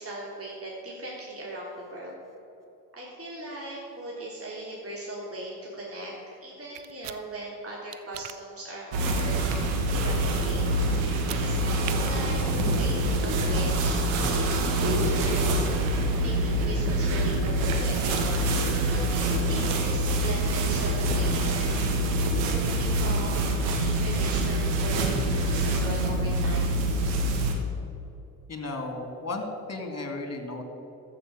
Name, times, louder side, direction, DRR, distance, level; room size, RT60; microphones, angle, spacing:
voice 1, 0.0-2.2 2.9-9.4 9.9-10.7 11.0-15.6 16.2-21.9 22.4-26.7, right 1 dB, 30° right, -5 dB, 3.3 m, -39 dB
sound 1, 6.8-7.2 7.9-8.4 11.1-11.4 11.8-12.0, right 14 dB, 65° right, 0.8 m, -39 dB
sound 2, 8.9-27.5, right 1 dB, 80° right, 1.7 m, -25 dB
voice 2, 28.5-30.6, left 2 dB, 35° left, 5 dB, 2.7 m, -34 dB
14.0 x 6.3 x 7.6 m, 2.9 s
hypercardioid pair, 50°, 45 cm